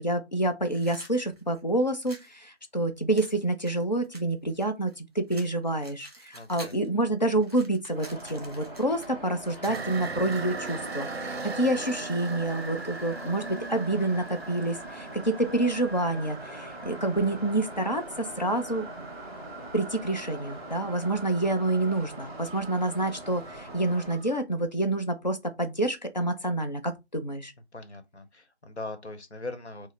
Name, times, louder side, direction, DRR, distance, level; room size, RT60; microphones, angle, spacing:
voice 1, 0.0-18.8 19.7-27.5, right 2 dB, 40° left, 0.6 m, -28 dB
sound 1, 0.7-2.3 3.2-5.0 5.3-6.9 7.2-10.7, right 2 dB, 35° right, 1.2 m, -48 dB
voice 2, 6.3-6.8 27.7-29.9, left 2 dB, 80° left, 1.0 m, -40 dB
sound 2, 7.9-24.2, equal, 10° right, 2.0 m, -43 dB
sound 3, 9.7-24.4, right 4 dB, 65° right, 0.5 m, -41 dB
5.0 x 2.0 x 3.1 m
figure-of-eight pair, 165°, 34 cm